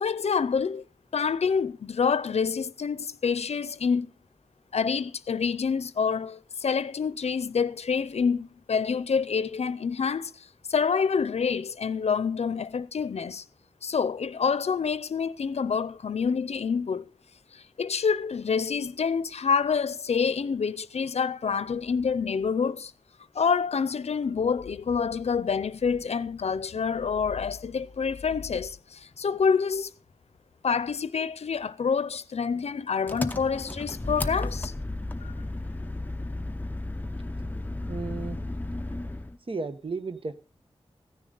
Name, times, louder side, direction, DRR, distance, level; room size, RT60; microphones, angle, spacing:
voice 1, 0.0-0.8 1.1-4.1 4.7-13.4 13.8-17.1 17.5-22.9 23.3-29.9 30.6-34.7 35.2-35.3, left 6 dB, 85° left, 0.5 m, -27 dB
Engine, 33.1-39.4, left 2 dB, 15° left, 0.8 m, -34 dB
voice 2, 37.9-38.4 39.5-40.3, right 3 dB, 55° right, 1.1 m, -33 dB
15.5 x 10.0 x 3.9 m
wide cardioid pair, 85°, 11 cm